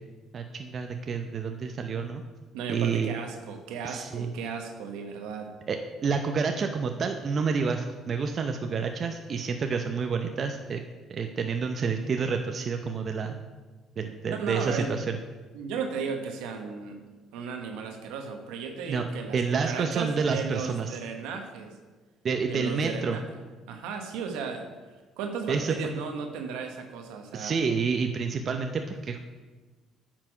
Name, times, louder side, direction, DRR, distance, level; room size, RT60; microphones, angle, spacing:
voice 1, 0.3-2.2 2.7-3.1 3.8-4.3 5.7-10.8 11.1-13.4 14.0-15.1 18.9-20.9 22.2-23.2 25.5-25.8 27.3-29.2, right 5 dB, 50° right, 5 dB, 0.7 m, -29 dB
voice 2, 2.5-5.5 14.3-14.9 15.5-17.0 17.3-21.8 22.4-23.4 23.7-24.7 25.2-27.6, right 5 dB, 80° right, 4 dB, 1.1 m, -35 dB
9.2 x 5.9 x 4.9 m, 1.3 s
supercardioid pair, 70°, 0 cm